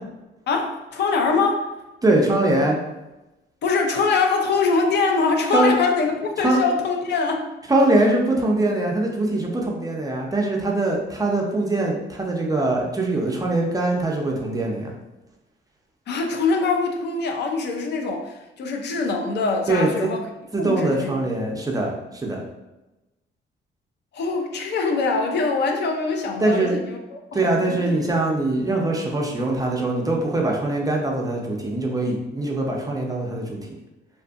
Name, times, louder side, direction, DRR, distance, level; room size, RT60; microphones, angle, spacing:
voice 1, 0.5-1.7 3.6-7.5 16.1-20.2 20.6-21.1 24.1-28.0, left 4 dB, 60° left, 3 dB, 0.5 m, -23 dB
voice 2, 2.0-2.8 5.5-5.7 6.4-6.6 7.7-14.9 19.7-20.1 20.5-22.4 26.4-26.7 27.3-33.8, right 2 dB, 20° right, -1 dB, 0.5 m, -22 dB
2.6 x 2.4 x 2.4 m, 0.99 s
cardioid pair, 90°, 20 cm